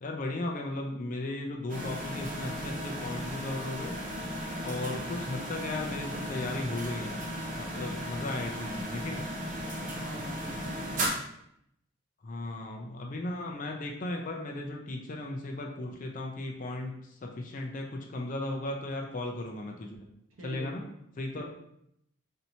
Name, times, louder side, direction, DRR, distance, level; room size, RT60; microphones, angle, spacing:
voice 1, 0.0-3.9 4.6-7.2 7.6-9.3 12.2-20.0 20.4-20.8 21.2-21.4, left 2 dB, 40° left, 2 dB, 0.4 m, -36 dB
sound 1, 1.7-11.1, equal, 40° right, 0.7 m, -36 dB
voice 2, 9.9-11.2 20.3-20.9 21.4-21.5, equal, 80° right, -1 dB, 0.9 m, -45 dB
4.3 x 2.8 x 2.7 m, 0.75 s
head